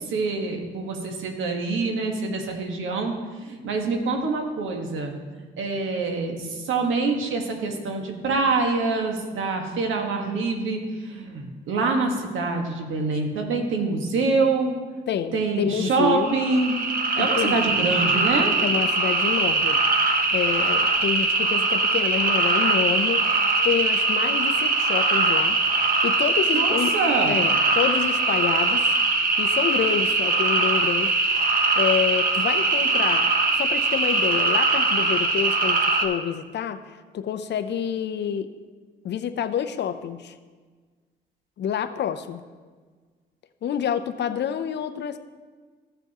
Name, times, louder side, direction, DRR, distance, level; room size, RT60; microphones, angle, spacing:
voice 1, 0.0-3.1 3.4-14.8 15.3-16.8 17.2-18.5 26.5-27.4, right 3 dB, 80° right, 3 dB, 1.7 m, -25 dB
voice 2, 15.1-16.4 17.2-17.5 18.6-19.8 20.3-25.6 26.0-26.9 27.3-29.0 29.4-31.5 31.8-38.5 39.0-40.3 41.6-42.4 43.6-45.2, left 8 dB, 60° left, 10 dB, 0.7 m, -28 dB
sound 1, 16.2-36.0, right 3 dB, 45° right, 1.3 m, -22 dB
15.5 x 6.9 x 3.0 m, 1.4 s
cardioid pair, 90°, 20 cm